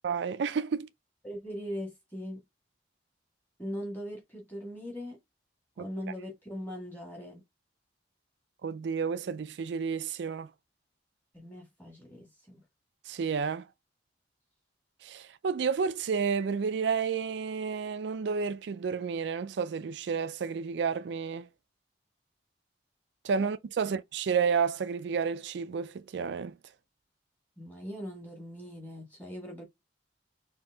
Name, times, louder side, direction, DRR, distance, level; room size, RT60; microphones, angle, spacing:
voice 1, 0.0-0.9 5.8-5.9 8.6-10.5 13.1-13.7 15.0-21.5 23.2-26.5, right 6 dB, 70° right, 0.4 m, -31 dB
voice 2, 1.2-2.4 3.6-5.2 5.8-7.4 11.3-12.6 23.8-23.9 27.6-29.6, equal, 10° left, 1.6 m, -40 dB
4.3 x 2.8 x 3.4 m
head